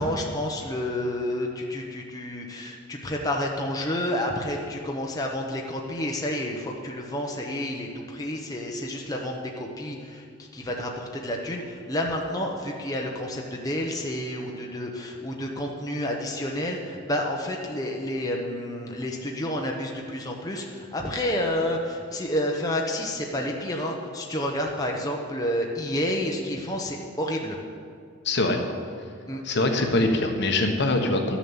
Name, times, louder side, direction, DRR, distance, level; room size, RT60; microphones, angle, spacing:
voice 1, 0.0-27.6 29.3-29.4, left 1 dB, 20° left, 0 dB, 0.9 m, -30 dB
voice 2, 28.2-28.6 29.4-31.4, left 2 dB, 55° left, 3 dB, 1.2 m, -23 dB
12.0 x 7.2 x 7.2 m, 2.2 s
head